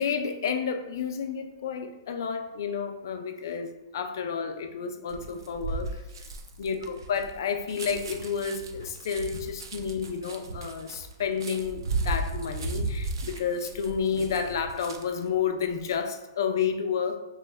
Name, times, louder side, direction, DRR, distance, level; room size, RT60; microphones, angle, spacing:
voice 1, 0.0-6.0 6.6-17.2, left 6 dB, 60° left, 6 dB, 0.4 m, -30 dB
sound 1, 5.1-15.3 15.6-16.0, right 3 dB, 80° right, 0.4 m, -35 dB
3.0 x 2.1 x 3.3 m, 1.1 s
hypercardioid pair, 160°, 2 cm